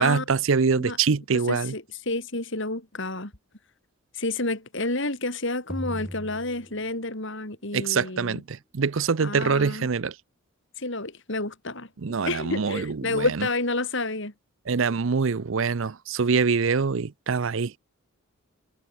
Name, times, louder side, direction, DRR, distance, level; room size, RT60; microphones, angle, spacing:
voice 1, 0.0-1.7 7.7-10.1 12.0-13.2 14.7-17.7, right 5 dB, 60° right, 0.6 m, -24 dB
voice 2, 1.5-3.3 4.1-8.4 9.2-9.9 10.8-11.9 12.2-14.3, left 2 dB, 55° left, 4.1 m, -30 dB
sound 1, 5.7-7.5, equal, 5° right, 3.0 m, -38 dB
head